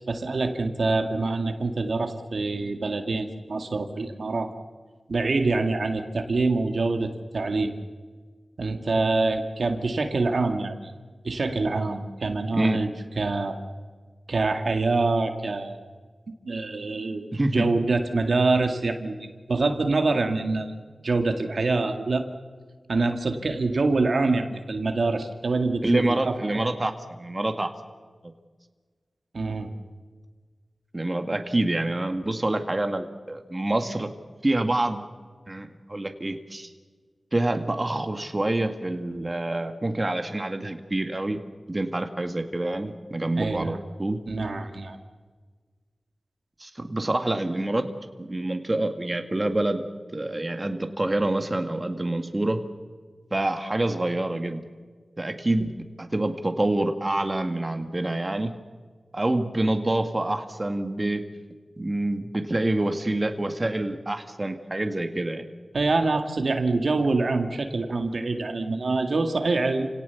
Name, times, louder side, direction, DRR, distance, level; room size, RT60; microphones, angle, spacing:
voice 1, 0.1-4.5 5.1-7.7 8.6-10.9 11.2-12.9 13.2-13.6 14.3-15.8 16.5-17.3 17.5-20.7 21.0-22.3 22.9-26.7 29.3-29.7 43.4-43.8 44.3-45.0 55.6-55.7 65.7-69.9, right 3 dB, 70° right, 6 dB, 2.0 m, -25 dB
voice 2, 17.3-17.7 25.8-27.7 30.9-34.1 34.4-35.0 35.5-36.7 37.3-41.4 41.7-44.2 46.6-47.9 48.2-49.8 50.1-52.6 53.3-54.6 55.2-55.7 56.0-58.5 59.1-61.2 61.8-65.4, right 1 dB, 30° right, 7 dB, 1.9 m, -26 dB
29.0 x 18.0 x 7.1 m, 1.5 s
wide cardioid pair, 60°, 0 cm